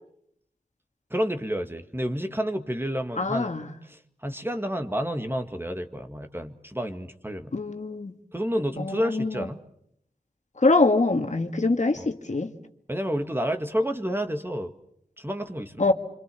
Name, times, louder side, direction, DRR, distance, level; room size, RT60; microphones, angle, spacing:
voice 1, 1.1-3.5 3.8-7.5 8.3-9.6 12.0-12.1 12.9-14.7 15.2-15.9, equal, 15° right, 6 dB, 2.0 m, -30 dB
voice 2, 3.2-3.7 7.5-8.1 8.8-9.3 10.6-12.5 15.8-15.9, left 3 dB, 55° left, 6 dB, 2.0 m, -23 dB
26.5 x 26.0 x 7.0 m, 0.72 s
wide cardioid pair, 50°, 15 cm